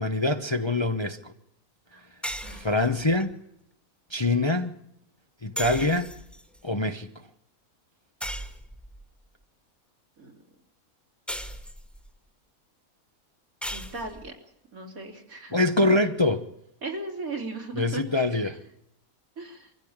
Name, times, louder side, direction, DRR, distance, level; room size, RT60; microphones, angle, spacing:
voice 1, 0.0-1.3 2.5-3.4 4.1-4.8 5.4-6.1 6.6-7.1 15.5-16.5 17.8-18.6, left 2 dB, 25° left, 0.8 m, -24 dB
sound 1, 2.2-3.3 5.6-6.6 8.2-9.1 11.3-12.1 13.6-14.3, equal, ahead, 1.7 m, -37 dB
voice 2, 13.7-14.3 14.7-15.6 16.8-18.5 19.4-19.7, right 3 dB, 75° right, 3.9 m, -37 dB
24.5 x 15.0 x 8.7 m
omnidirectional pair, 1.5 m